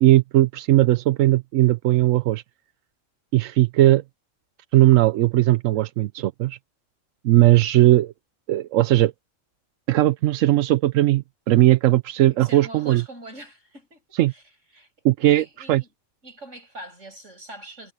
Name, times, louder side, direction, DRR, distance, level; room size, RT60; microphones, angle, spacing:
voice 1, 0.0-2.4 3.3-4.0 4.7-6.6 7.2-8.1 8.5-9.1 9.9-13.0 14.2-14.3 15.0-15.8, right 15 dB, 85° right, 1.0 m, -18 dB
voice 2, 12.3-14.4 14.7-15.9 16.2-17.9, right 1 dB, 70° right, 7.0 m, -43 dB
omnidirectional pair, 1.3 m